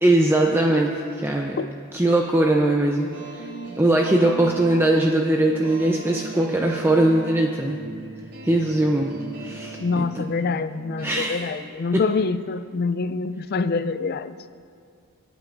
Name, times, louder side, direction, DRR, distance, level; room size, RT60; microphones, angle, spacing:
voice 1, 0.0-1.6 1.9-3.5 3.8-7.8 8.4-9.1 9.4-10.2 11.0-11.4, right 1 dB, 10° right, 0.5 m, -21 dB
sound 1, 3.1-11.4, right 3 dB, 50° right, 3.7 m, -38 dB
voice 2, 9.8-14.4, left 4 dB, 45° left, 0.3 m, -25 dB
25.5 x 9.0 x 2.5 m
head